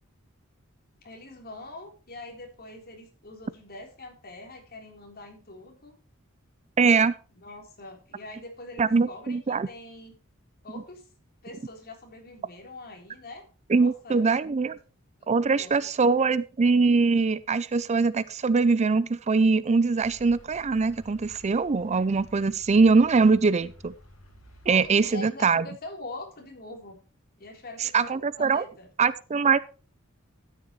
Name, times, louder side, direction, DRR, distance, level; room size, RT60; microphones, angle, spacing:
voice 1, 1.0-6.0 7.3-10.2 10.6-11.1 11.4-13.5 13.7-14.3 14.6-14.7 15.2-15.7 24.6-27.0 27.4-28.9, left 2 dB, 45° left, 2 dB, 3.7 m, -44 dB
voice 2, 6.8-7.1 8.8-9.7 13.7-14.8 15.3-23.9 24.7-25.7 27.8-28.6 29.0-29.6, right 4 dB, 30° right, 17 dB, 0.5 m, -22 dB
sound 1, 20.0-25.1, left 1 dB, 70° left, 5.6 m, -52 dB
13.5 x 10.0 x 3.1 m, 0.35 s
head